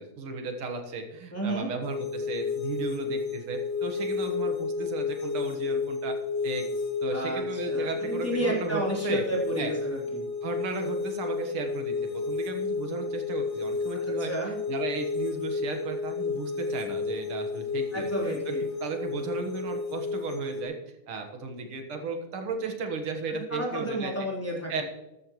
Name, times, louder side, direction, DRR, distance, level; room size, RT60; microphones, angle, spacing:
voice 1, 0.0-6.1 6.4-6.7 7.0-9.2 9.6-9.7 10.4-14.3 14.7-20.8 21.1-24.1 24.7-24.8, right 4 dB, 85° right, 4 dB, 2.4 m, -35 dB
voice 2, 1.3-1.7 7.1-10.3 14.2-14.6 17.9-18.6 23.3-24.8, right 1 dB, 5° left, -5 dB, 3.4 m, -32 dB
sound 1, 1.8-20.6, left 4 dB, 75° left, 2.1 m, -31 dB
14.0 x 12.5 x 3.1 m, 0.96 s
omnidirectional pair, 2.3 m